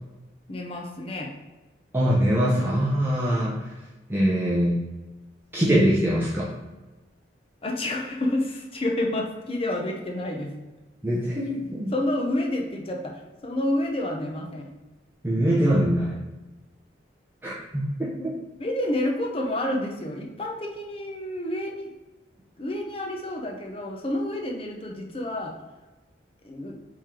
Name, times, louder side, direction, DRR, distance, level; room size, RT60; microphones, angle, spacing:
voice 1, 0.5-1.3 7.6-10.5 11.9-14.7 18.6-21.9 22.6-25.6 26.4-26.8, left 1 dB, 30° left, 1 dB, 0.7 m, -29 dB
voice 2, 1.9-3.7 4.1-4.8 5.5-6.5 11.0-11.9 15.2-16.2 17.4-18.3, equal, 10° right, -6 dB, 0.6 m, -23 dB
3.7 x 3.2 x 4.3 m, 1.1 s
head